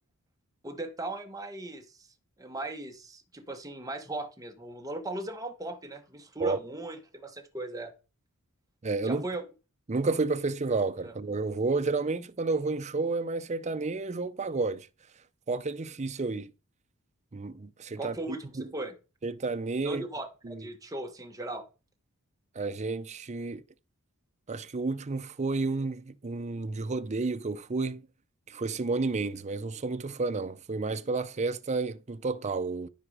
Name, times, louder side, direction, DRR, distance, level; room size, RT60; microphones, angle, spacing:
voice 1, 0.6-2.1 2.4-7.9 9.0-9.4 11.0-11.1 18.0-18.9 19.8-21.6, right 2 dB, 15° right, 1.3 m, -38 dB
voice 2, 8.8-9.2 9.9-14.9 15.5-16.5 17.3-18.2 18.6-18.7 19.2-20.0 20.4-20.7 22.6-23.6 24.5-28.0 28.5-32.9, right 3 dB, 30° right, 0.6 m, -31 dB
12.5 x 4.9 x 4.9 m
head